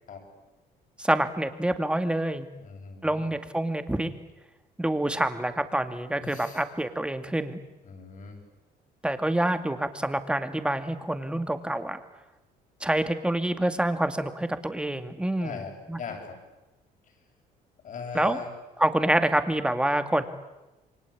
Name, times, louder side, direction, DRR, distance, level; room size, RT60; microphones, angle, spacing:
voice 1, 1.0-2.5 3.0-4.1 4.8-7.6 9.0-12.0 12.8-15.6 15.9-16.0 18.1-18.4 18.8-20.2, right 1 dB, 5° right, 8 dB, 2.3 m, -27 dB
voice 2, 2.6-3.3 6.2-6.6 7.8-8.4 15.4-16.4 17.8-18.5, left 5 dB, 50° left, 3 dB, 7.8 m, -39 dB
28.5 x 24.0 x 8.6 m, 1.0 s
cardioid pair, 110°, 17 cm